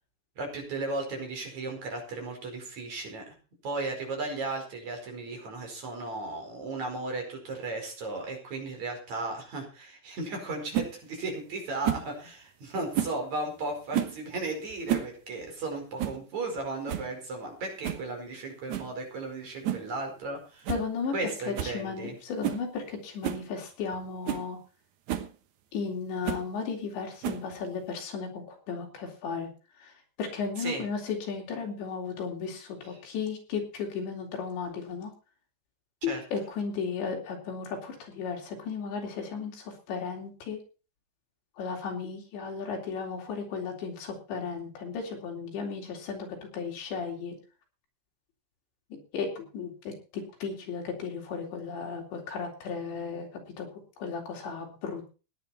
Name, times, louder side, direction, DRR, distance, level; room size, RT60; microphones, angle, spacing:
voice 1, 0.4-3.4 3.6-20.7 21.1-22.2 30.6-30.8 36.1-36.2, right 2 dB, 40° right, 3 dB, 5.9 m, -35 dB
sound 1, 10.7-10.9 11.8-12.1 12.9-13.2 13.9-14.2 14.7-15.1 15.4-15.5 16.0-16.2 16.6-16.7 16.9-17.1 17.8-18.1 18.7-18.9 19.6-19.9 20.2-20.3 20.6-20.9 21.1-21.2 21.6-21.8 22.4-22.6 23.2-23.4 23.9-24.0 24.3-24.5 25.1-25.3 26.2-26.5 27.2-27.6, right 11 dB, 70° right, 1.8 m, -31 dB
voice 2, 20.7-21.1 21.5-24.6 25.7-29.5 29.8-35.1 36.0-40.6 41.6-47.4 48.9-55.1, left 5 dB, 75° left, 1 dB, 5.9 m, -35 dB
17.5 x 10.5 x 4.3 m, 0.34 s
omnidirectional pair, 5.2 m